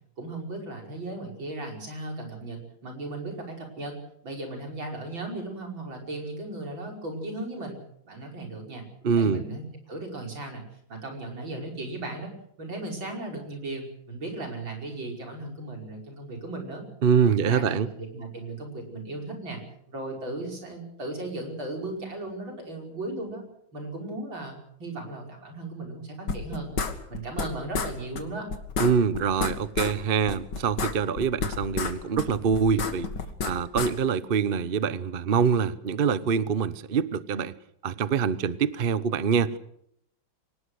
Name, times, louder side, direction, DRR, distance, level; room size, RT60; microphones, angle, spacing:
voice 1, 0.2-3.9 4.2-7.8 8.0-8.8 9.1-10.6 10.9-12.3 12.6-16.8 17.4-19.6 19.9-23.4 23.7-26.8 27.1-28.5, right 2 dB, 70° right, 2 dB, 6.2 m, -36 dB
voice 2, 9.0-9.4 17.0-17.9 28.8-33.1 33.4-37.5 37.8-39.6, right 6 dB, 50° right, 15 dB, 0.6 m, -25 dB
sound 1, 26.3-27.5 27.7-27.9 28.2-28.3 28.5-29.9 30.3-33.9, left 5 dB, 60° left, 2.5 m, -30 dB
24.0 x 19.5 x 6.4 m, 0.71 s
omnidirectional pair, 2.2 m